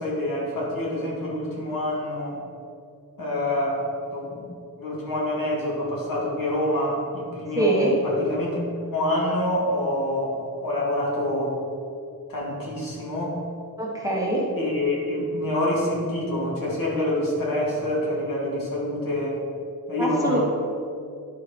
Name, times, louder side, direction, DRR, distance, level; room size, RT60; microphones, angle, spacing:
voice 1, 0.0-2.4 3.2-3.8 4.1-4.5 4.8-11.6 12.3-13.4 14.6-19.4 19.9-20.4, left 1 dB, 75° left, -4 dB, 2.4 m, -26 dB
voice 2, 7.6-7.9 13.8-14.4 20.0-20.4, right 1 dB, 10° right, -4 dB, 1.4 m, -23 dB
10.5 x 4.7 x 5.3 m, 2.4 s
wide cardioid pair, 160°, 34 cm